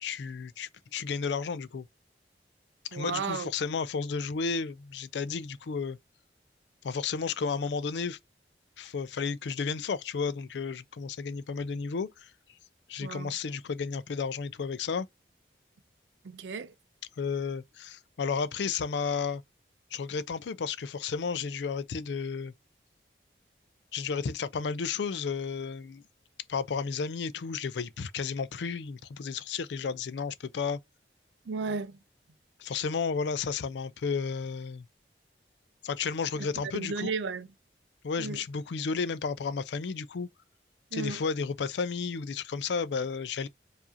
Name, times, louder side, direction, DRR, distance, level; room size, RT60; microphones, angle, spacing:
voice 1, 0.0-1.9 2.9-6.0 6.8-8.2 8.8-12.3 12.9-15.1 17.2-19.4 19.9-22.5 23.9-26.0 26.5-30.8 32.6-34.9 35.8-37.1 38.0-40.3 40.9-43.5, left 5 dB, 75° left, 0.4 m, -32 dB
voice 2, 2.9-3.5 13.0-13.4 16.2-16.7 31.5-32.0 36.7-37.5 38.2-38.4 40.9-41.2, right 4 dB, 85° right, 0.5 m, -34 dB
4.7 x 2.6 x 2.6 m
head